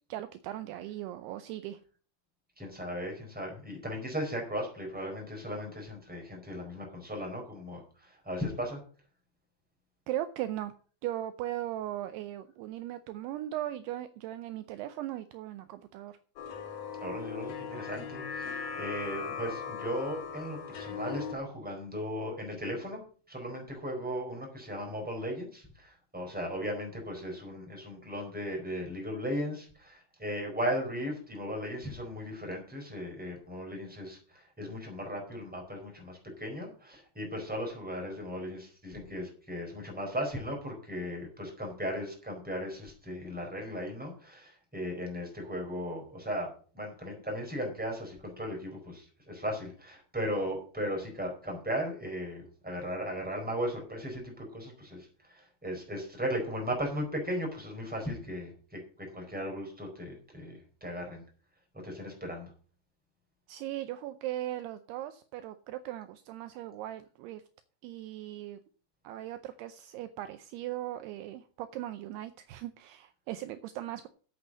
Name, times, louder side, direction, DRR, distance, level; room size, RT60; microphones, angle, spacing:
voice 1, 0.1-1.8 10.1-10.7 11.0-16.2 63.5-67.4 67.8-68.6 69.0-74.1, right 13 dB, 80° right, 10 dB, 2.6 m, -38 dB
voice 2, 2.6-8.8 17.0-23.0 23.3-46.5 46.7-61.2 61.8-62.5, equal, ahead, 0 dB, 4.0 m, -37 dB
sound 1, 16.4-21.3, left 6 dB, 60° left, 2.6 m, -39 dB
8.3 x 8.1 x 7.5 m, 0.42 s
omnidirectional pair, 5.0 m